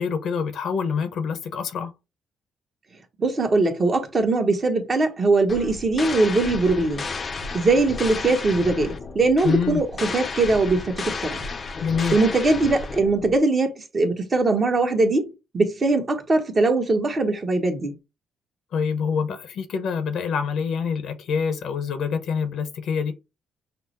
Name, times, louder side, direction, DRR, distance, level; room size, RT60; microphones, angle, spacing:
voice 1, 0.0-1.9 9.4-9.8 11.8-12.2 18.7-23.1, left 6 dB, 75° left, 0.8 m, -26 dB
voice 2, 3.2-7.1 7.5-11.4 12.1-18.0, right 3 dB, 35° right, 1.1 m, -21 dB
sound 1, 5.5-13.4, left 4 dB, 40° left, 0.6 m, -33 dB
5.8 x 2.0 x 2.9 m
cardioid pair, 90°, 0 cm